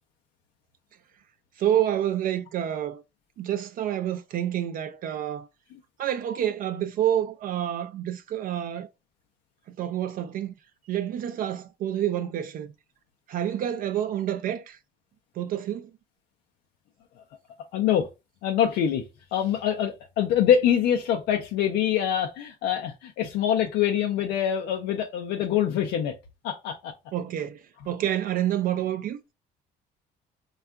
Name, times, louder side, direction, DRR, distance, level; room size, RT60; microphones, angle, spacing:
voice 1, 1.6-3.0 3.4-5.5 6.0-8.9 9.8-10.5 10.9-12.7 13.3-14.8 15.4-15.9 27.1-27.6 27.9-29.2, right 11 dB, 55° right, 0.4 m, -28 dB
voice 2, 17.7-18.1 18.4-19.0 19.3-26.1 26.4-26.9, left 9 dB, 85° left, 0.5 m, -24 dB
3.5 x 2.3 x 2.2 m
cardioid pair, 110°, 17 cm